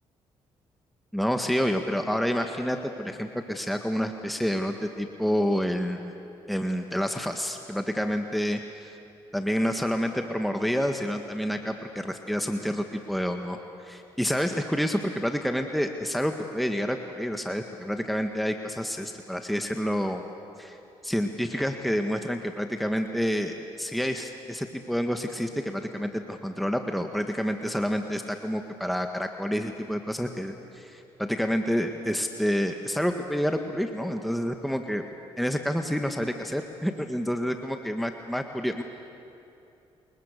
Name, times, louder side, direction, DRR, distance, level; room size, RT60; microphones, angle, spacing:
voice 1, 1.1-6.1 6.5-9.0 9.3-20.2 20.6-20.8 21.0-35.0 35.4-38.8, equal, ahead, 5 dB, 1.7 m, -28 dB
28.5 x 20.5 x 6.8 m, 2.7 s
supercardioid pair, 55°, 13 cm